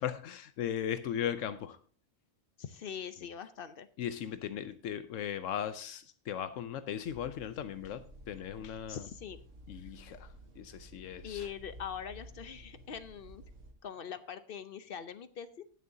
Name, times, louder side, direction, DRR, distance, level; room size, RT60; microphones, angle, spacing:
voice 1, 0.0-1.8 4.0-9.1 9.7-11.5, left 9 dB, 85° left, 11 dB, 1.0 m, -37 dB
voice 2, 2.6-3.9 8.9-9.4 11.2-13.4 13.8-15.6, left 8 dB, 55° left, 12 dB, 0.7 m, -42 dB
sound 1, 7.0-13.7, right 1 dB, 75° right, 1.6 m, -53 dB
19.0 x 6.7 x 2.7 m, 0.42 s
omnidirectional pair, 1.3 m